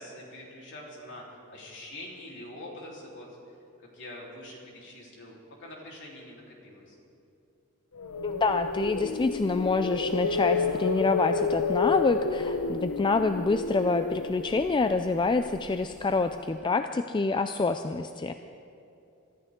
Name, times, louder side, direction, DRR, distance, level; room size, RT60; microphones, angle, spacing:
voice 1, 0.0-3.3 3.8-7.0, left 1 dB, 55° left, -3 dB, 3.7 m, -44 dB
sound 1, 8.0-16.0, left 4 dB, 90° left, 0.7 m, -30 dB
voice 2, 8.2-18.3, left 3 dB, 20° left, 8 dB, 0.3 m, -27 dB
25.0 x 13.5 x 3.7 m, 2.7 s
head